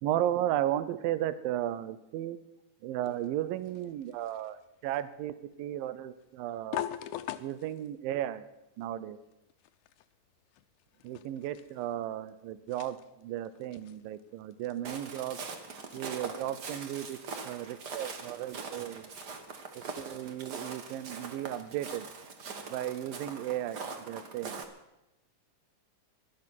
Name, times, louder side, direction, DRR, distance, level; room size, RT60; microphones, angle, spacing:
voice 1, 0.0-2.4 2.8-6.9 7.4-8.4 8.8-9.2 11.0-15.4 15.9-17.2 17.4-19.1 20.0-22.1 22.7-23.8 24.1-24.6, right 12 dB, 90° right, 15 dB, 2.4 m, -34 dB
sound 1, 3.0-19.5, left 12 dB, 75° left, 1.9 m, -46 dB
Walk footsteps, 14.8-24.6, right 4 dB, 60° right, 1.0 m, -42 dB
17.0 x 12.0 x 6.0 m, 0.92 s
omnidirectional pair, 3.9 m